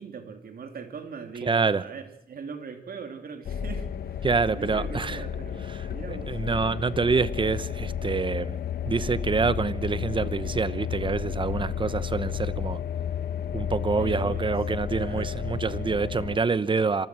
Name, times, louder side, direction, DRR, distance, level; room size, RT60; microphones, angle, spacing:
voice 1, 0.0-4.2 4.5-6.3 13.9-14.5 15.0-15.3, right 5 dB, 70° right, 6 dB, 3.1 m, -40 dB
voice 2, 1.4-1.8 4.2-5.2 5.6-8.6 8.9-12.8 13.5-17.1, right 4 dB, 30° right, 16 dB, 0.9 m, -26 dB
sound 1, 3.5-16.4, left 8 dB, 80° left, 1.0 m, -32 dB
26.5 x 20.0 x 6.3 m, 0.79 s
wide cardioid pair, 120°, 16 cm